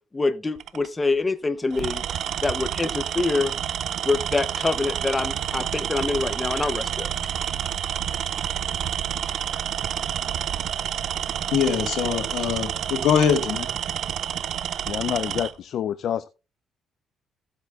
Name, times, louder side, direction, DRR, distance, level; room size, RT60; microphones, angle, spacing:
voice 1, 0.1-2.0 2.4-3.5 4.0-7.1, left 3 dB, 20° left, 0.7 m, -25 dB
Tools, 0.6-0.9 1.7-15.5, right 10 dB, 60° right, 0.4 m, -29 dB
voice 2, 11.5-13.7, left 7 dB, 85° left, 1.6 m, -23 dB
voice 3, 14.9-16.3, left 9 dB, 60° left, 0.4 m, -27 dB
15.5 x 7.9 x 2.4 m
cardioid pair, 125°, 0 cm